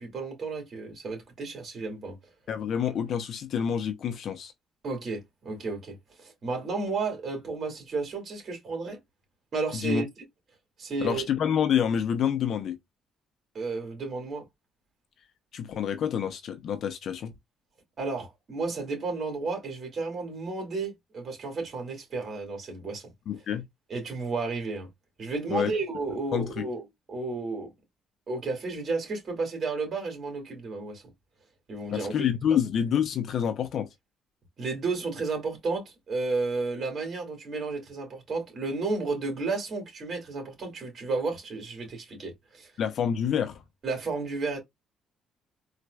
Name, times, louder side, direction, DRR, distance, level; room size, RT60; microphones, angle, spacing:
voice 1, 0.0-2.2 4.8-9.0 9.5-10.1 10.8-11.2 13.5-14.5 18.0-23.1 23.9-24.9 25.2-26.8 27.1-27.7 28.3-31.0 31.7-32.1 34.6-42.7 43.8-44.6, right 3 dB, 45° right, 2.2 m, -32 dB
voice 2, 2.5-4.5 9.7-10.0 11.0-12.8 15.5-17.3 23.3-23.7 25.5-25.7 26.3-26.7 31.9-33.9 42.8-43.6, left 8 dB, 60° left, 0.6 m, -27 dB
4.2 x 2.4 x 2.2 m
cardioid pair, 85°, 0 cm